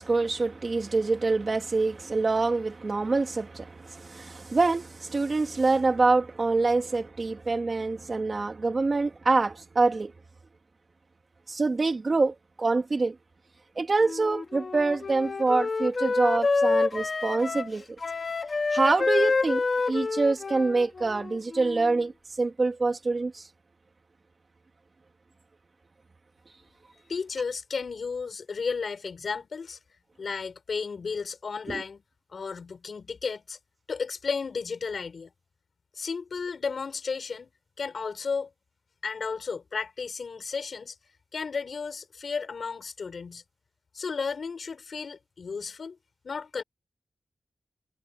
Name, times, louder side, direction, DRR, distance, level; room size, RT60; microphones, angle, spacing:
voice 1, 0.0-10.1 11.5-13.2 13.8-17.8 18.7-22.1 22.4-23.4 31.7-31.8, right 3 dB, 40° right, 2.6 m, -25 dB
Wind instrument woodwind instrument, 14.0-22.0, left 3 dB, 45° left, 1.9 m, -28 dB
voice 2, 27.1-29.8 30.2-32.0 32.3-33.6 33.9-35.3 35.9-37.5 37.8-38.5 39.0-40.9 41.3-43.4 43.9-46.0 46.2-46.6, left 5 dB, 65° left, 6.4 m, -33 dB
wide cardioid pair, 135°, 0 cm